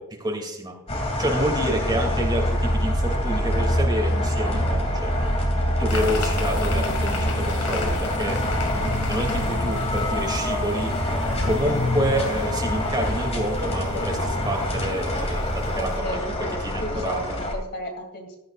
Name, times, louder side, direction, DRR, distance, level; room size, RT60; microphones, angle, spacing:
voice 1, 0.2-0.7 1.2-5.1 5.6-8.4 9.1-10.9 11.4-16.2 16.6-17.4, right 1 dB, 20° right, 1 dB, 2.6 m, -28 dB
sound 1, 0.9-17.5, left 1 dB, 30° left, 2.7 m, -25 dB
sound 2, 5.9-16.0, left 2 dB, 85° left, 2.3 m, -34 dB
voice 2, 15.8-18.4, left 1 dB, 50° left, 3 dB, 2.6 m, -34 dB
15.5 x 13.0 x 2.5 m, 0.90 s
head